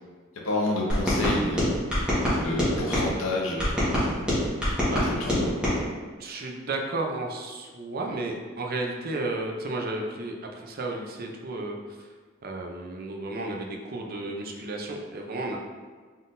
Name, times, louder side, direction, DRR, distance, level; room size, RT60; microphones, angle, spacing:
voice 1, 0.4-3.8 5.0-5.6, left 2 dB, 85° left, -1 dB, 0.8 m, -30 dB
sound 1, 0.9-3.1 3.6-5.8, equal, 5° right, 1.3 m, -25 dB
voice 2, 6.2-12.1 12.4-15.6, right 2 dB, 50° right, 2 dB, 0.5 m, -33 dB
4.1 x 3.7 x 2.6 m, 1.5 s
head